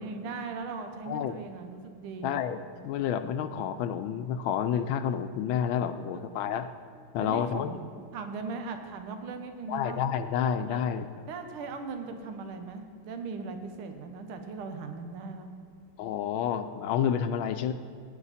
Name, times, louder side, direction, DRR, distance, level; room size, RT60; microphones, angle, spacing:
voice 1, 0.0-2.4 6.1-6.3 7.2-7.9 8.1-10.0 10.7-10.8 11.3-15.5, right 4 dB, 80° right, 6 dB, 1.8 m, -39 dB
voice 2, 1.1-1.4 2.2-6.7 7.1-7.8 9.7-11.1 16.0-17.7, left 8 dB, 75° left, 9 dB, 1.3 m, -29 dB
18.0 x 9.7 x 4.2 m, 2.2 s
omnidirectional pair, 2.3 m